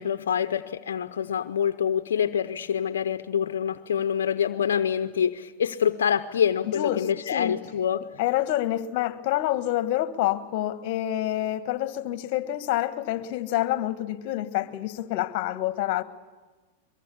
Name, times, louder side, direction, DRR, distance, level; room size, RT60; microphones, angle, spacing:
voice 1, 0.0-8.0, left 8 dB, 85° left, 10 dB, 0.7 m, -26 dB
voice 2, 6.6-7.6 8.2-16.0, left 14 dB, 55° left, 12 dB, 1.4 m, -27 dB
23.0 x 22.5 x 7.0 m, 1.3 s
hypercardioid pair, 110°, 0 cm